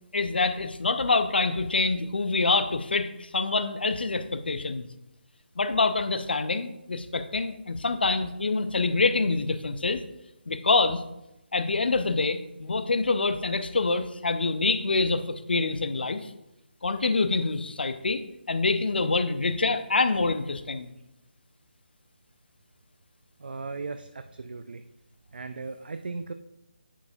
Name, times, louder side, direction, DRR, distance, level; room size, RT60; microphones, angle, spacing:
voice 1, 0.1-4.9 5.6-10.0 10.5-11.0 11.5-16.3 16.8-18.2 18.5-20.9, left 3 dB, 65° left, 10 dB, 0.5 m, -26 dB
voice 2, 23.4-24.8 25.3-26.3, right 4 dB, 60° right, 9 dB, 0.4 m, -37 dB
9.9 x 4.7 x 2.6 m, 0.88 s
figure-of-eight pair, 150°, 6 cm